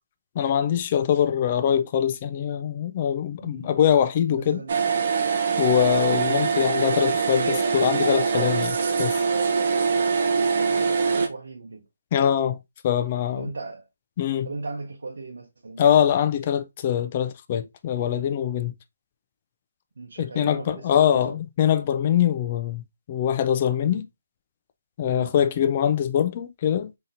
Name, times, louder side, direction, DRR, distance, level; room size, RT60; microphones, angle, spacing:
voice 1, 0.4-4.6 5.6-9.2 12.1-12.6 12.8-13.5 14.2-14.5 15.8-18.7 20.2-22.8 23.1-24.0 25.0-26.9, left 9 dB, 25° left, 0.3 m, -23 dB
voice 2, 3.4-3.8 4.3-4.9 6.1-6.5 10.5-11.9 13.4-13.8 14.4-15.8 20.0-21.4 23.6-24.0 25.1-25.3, right 3 dB, 90° right, 0.7 m, -38 dB
sound 1, 4.7-11.3, right 5 dB, 45° right, 0.6 m, -23 dB
3.9 x 2.8 x 2.5 m
hypercardioid pair, 170°, 0 cm